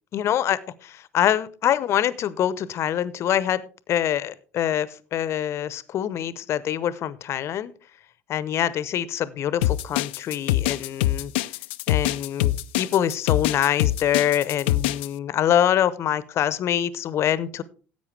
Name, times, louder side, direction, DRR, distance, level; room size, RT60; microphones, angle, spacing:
voice 1, 0.1-3.6 3.9-7.7 8.3-11.3 11.9-17.6, left 10 dB, 45° left, 18 dB, 0.8 m, -25 dB
sound 1, 9.6-15.1, left 15 dB, 65° left, 0.4 m, -24 dB
16.0 x 8.2 x 3.3 m, 0.38 s
figure-of-eight pair, 60°, 6 cm